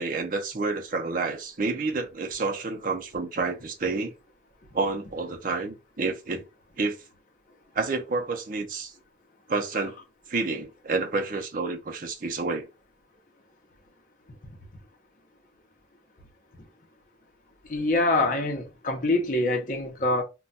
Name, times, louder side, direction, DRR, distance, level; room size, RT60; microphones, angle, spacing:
voice 1, 0.0-4.1 4.7-6.4 6.8-7.0 7.8-8.9 9.5-10.0 10.3-12.7, right 3 dB, 50° right, 0.5 m, -29 dB
voice 2, 17.7-20.2, left 2 dB, 45° left, 0.7 m, -25 dB
2.2 x 2.2 x 3.8 m
head